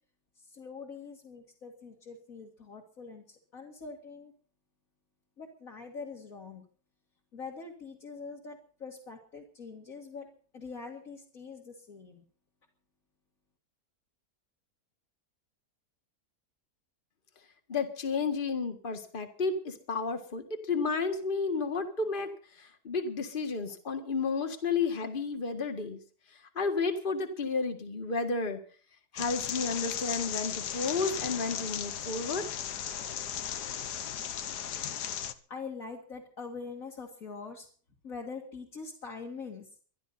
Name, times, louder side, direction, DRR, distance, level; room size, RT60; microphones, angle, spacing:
voice 1, 0.4-4.3 5.4-6.6 7.3-10.3 10.5-12.2 35.5-37.7 38.0-39.7, left 4 dB, 55° left, -2 dB, 2.7 m, -44 dB
voice 2, 17.7-26.0 26.6-28.6 29.1-32.5, left 4 dB, 30° left, 6 dB, 1.9 m, -32 dB
sound 1, 29.2-35.3, left 9 dB, 85° left, 1.6 m, -36 dB
22.5 x 12.5 x 4.2 m, 0.43 s
omnidirectional pair, 1.7 m